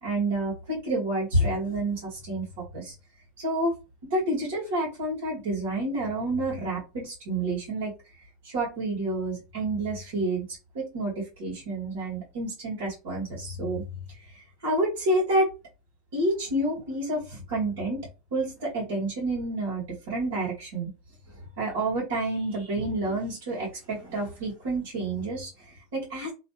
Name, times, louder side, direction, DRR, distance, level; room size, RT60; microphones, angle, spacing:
voice 1, 0.0-2.9 3.4-3.7 4.1-7.9 8.4-10.4 10.7-13.8 14.6-15.5 16.1-20.9 21.3-26.3, right 1 dB, 85° right, 1.7 m, -29 dB
2.9 x 2.6 x 2.8 m
supercardioid pair, 155°, 0 cm